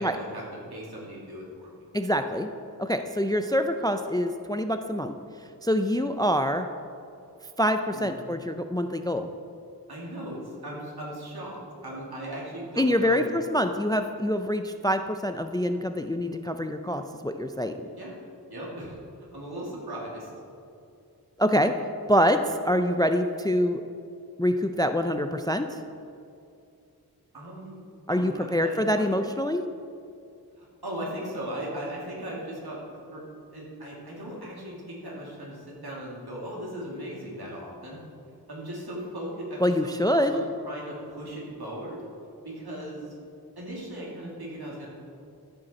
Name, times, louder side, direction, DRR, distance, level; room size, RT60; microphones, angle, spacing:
voice 1, 0.0-1.7 7.9-8.1 9.9-13.4 18.0-18.1 18.5-20.3 27.3-27.8 28.1-29.5 30.6-33.2 33.5-38.0 38.5-42.0 42.4-43.1 43.6-44.9, right 1 dB, 70° right, -4 dB, 2.4 m, -38 dB
voice 2, 1.9-2.5 2.8-5.1 5.6-6.7 7.6-9.3 12.8-17.7 21.4-21.7 22.1-23.8 24.4-25.8 28.1-29.6 39.6-40.4, equal, 10° left, 8 dB, 0.3 m, -25 dB
13.5 x 5.2 x 4.2 m, 2.5 s
wide cardioid pair, 45°, 39 cm